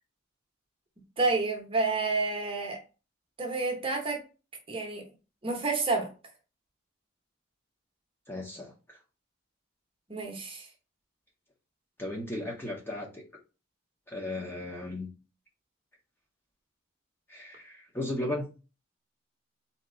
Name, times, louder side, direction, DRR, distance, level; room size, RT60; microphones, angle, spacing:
voice 1, 1.2-2.8 3.4-4.2 4.7-5.0 5.4-6.1 10.1-10.7, right 3 dB, 25° right, 1.0 m, -29 dB
voice 2, 8.3-9.0 12.0-13.2 14.1-15.1 17.3-18.5, left 1 dB, 10° left, 0.9 m, -36 dB
4.2 x 2.9 x 3.8 m
head